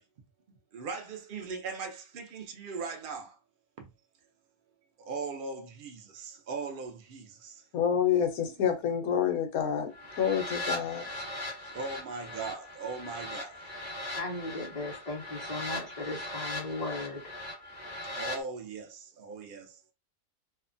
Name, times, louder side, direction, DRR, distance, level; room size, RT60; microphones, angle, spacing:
voice 1, 0.7-3.2 5.1-5.9 6.5-6.9 11.8-13.4 18.2-18.8 19.3-19.6, right 4 dB, 85° right, 0.4 m, -38 dB
voice 2, 7.7-9.9 10.2-11.1, left 8 dB, 70° left, 1.1 m, -28 dB
sound 1, 9.9-18.4, left 1 dB, 15° left, 1.2 m, -39 dB
voice 3, 14.1-17.2, left 2 dB, 35° left, 0.7 m, -37 dB
2.7 x 2.1 x 2.5 m
omnidirectional pair, 1.6 m